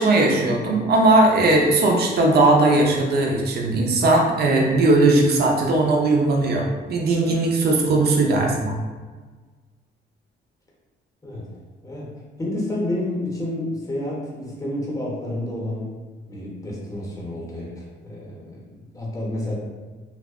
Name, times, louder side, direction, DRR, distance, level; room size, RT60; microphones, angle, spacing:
voice 1, 0.0-8.8, right 2 dB, 55° right, 0 dB, 0.5 m, -18 dB
voice 2, 12.4-15.9 16.3-19.5, left 1 dB, 15° left, -4 dB, 0.7 m, -30 dB
2.6 x 2.0 x 2.4 m, 1.4 s
cardioid pair, 90°, 20 cm